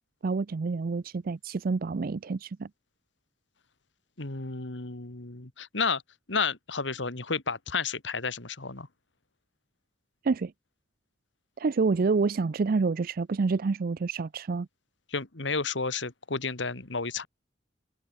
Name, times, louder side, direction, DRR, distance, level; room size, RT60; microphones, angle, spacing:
voice 1, 0.2-2.7 10.2-10.5 11.6-14.7, right 4 dB, 55° right, 0.5 m, -28 dB
voice 2, 4.2-6.0 6.3-8.9 15.1-17.3, left 4 dB, 85° left, 2.2 m, -31 dB
head